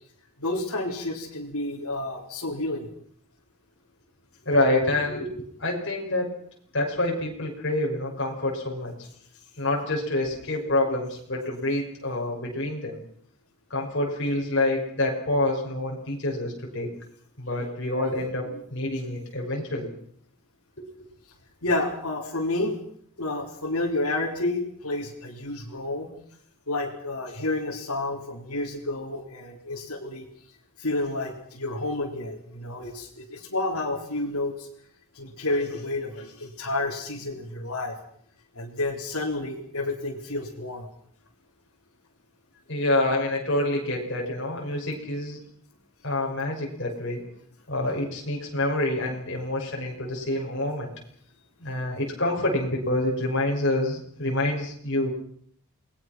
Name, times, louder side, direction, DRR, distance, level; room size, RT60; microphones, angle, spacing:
voice 1, 0.4-2.9 18.0-18.1 21.6-22.8 23.2-26.1 26.7-30.3 30.8-34.7 35.1-38.0 38.5-40.9, left 2 dB, 80° left, -4 dB, 3.9 m, -30 dB
voice 2, 4.4-6.4 6.7-8.9 9.6-13.0 13.7-16.9 17.4-19.9 20.8-20.9 42.7-45.4 46.0-47.2 47.7-50.9 51.6-55.1, left 1 dB, 55° left, -1 dB, 6.2 m, -27 dB
28.5 x 20.5 x 6.1 m, 0.63 s
head